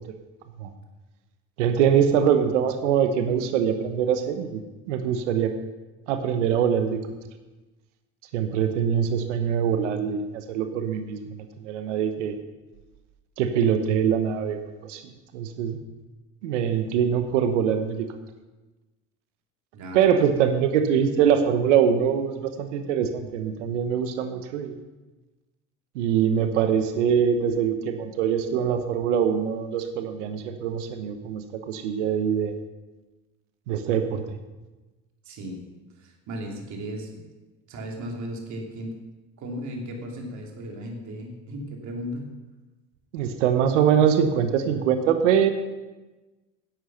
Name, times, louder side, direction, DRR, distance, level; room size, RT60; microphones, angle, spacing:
voice 1, 1.6-4.6 4.9-5.5 6.1-7.0 8.3-12.4 13.4-15.0 15.3-15.8 16.4-18.1 19.9-24.8 25.9-32.5 33.7-34.2 43.1-45.5, right 8 dB, 90° right, 8 dB, 1.1 m, -23 dB
voice 2, 19.7-20.3 35.2-35.6 36.0-37.2 37.7-39.0 39.4-42.3, equal, 55° right, 1 dB, 2.8 m, -36 dB
11.0 x 8.1 x 5.8 m, 1.1 s
supercardioid pair, 85°, 35 cm